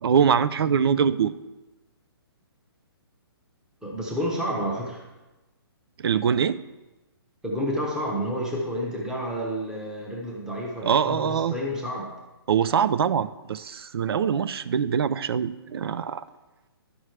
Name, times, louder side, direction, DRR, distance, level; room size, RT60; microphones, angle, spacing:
voice 1, 0.0-1.4 6.0-6.6 10.8-11.5 12.5-16.2, right 7 dB, 70° right, 15 dB, 0.4 m, -23 dB
voice 2, 3.8-5.0 7.4-12.1, equal, 5° right, -2 dB, 0.9 m, -30 dB
11.0 x 6.2 x 3.3 m, 1.1 s
hypercardioid pair, 150°, 13 cm